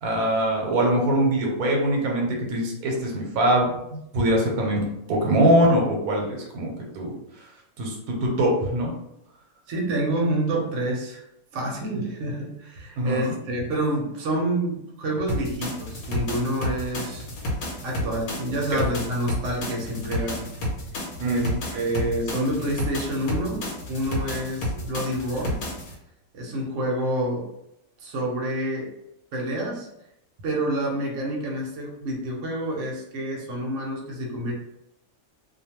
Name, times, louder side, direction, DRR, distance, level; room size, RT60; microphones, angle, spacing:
voice 1, 0.0-7.5 7.8-8.9 13.0-13.3 21.2-21.8, right 1 dB, 85° right, 0 dB, 1.1 m, -23 dB
voice 2, 9.7-11.3 11.5-17.3 17.5-20.5 21.2-21.5 21.7-25.6 26.3-27.5 28.0-28.9 29.3-29.9 30.4-34.5, right 1 dB, 65° right, -2 dB, 1.0 m, -28 dB
sound 1, 15.3-25.9, left 1 dB, 85° left, 1.2 m, -31 dB
2.6 x 2.2 x 2.8 m, 0.81 s
omnidirectional pair, 1.5 m